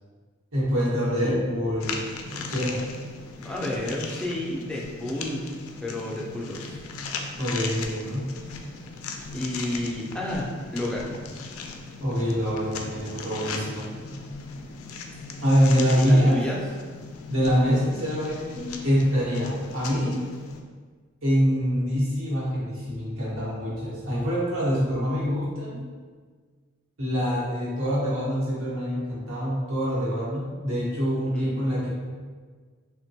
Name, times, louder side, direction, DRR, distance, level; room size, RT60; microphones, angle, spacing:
voice 1, 0.5-2.0 2.3-2.8 7.4-8.2 12.0-13.9 15.4-16.4 17.3-20.2 21.2-25.8 27.0-31.9, equal, 85° right, -7 dB, 1.0 m, -25 dB
voice 2, 1.0-1.4 3.4-5.5 5.8-6.8 9.3-10.5 10.7-11.1 16.0-16.6 31.2-31.7, left 1 dB, 5° left, -4 dB, 0.4 m, -31 dB
sound 1, 1.8-20.6, left 4 dB, 85° left, 0.3 m, -38 dB
3.0 x 2.2 x 2.7 m, 1.5 s
head